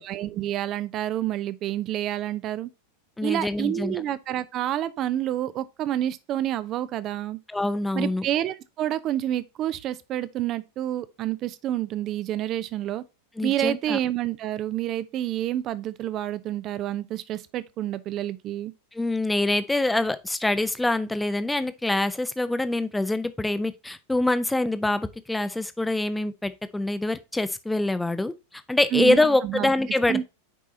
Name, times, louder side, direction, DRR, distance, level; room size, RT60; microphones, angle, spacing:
voice 1, 0.0-2.7 3.2-7.4 7.9-13.0 13.4-18.7 28.9-29.2 29.4-29.7 30.1-30.3, right 12 dB, 35° right, 0.6 m, -28 dB
voice 2, 3.2-4.0 7.5-8.3 13.4-14.0 18.9-30.3, left 2 dB, 5° left, 0.7 m, -25 dB
9.9 x 4.7 x 2.7 m
figure-of-eight pair, 90°, 0 cm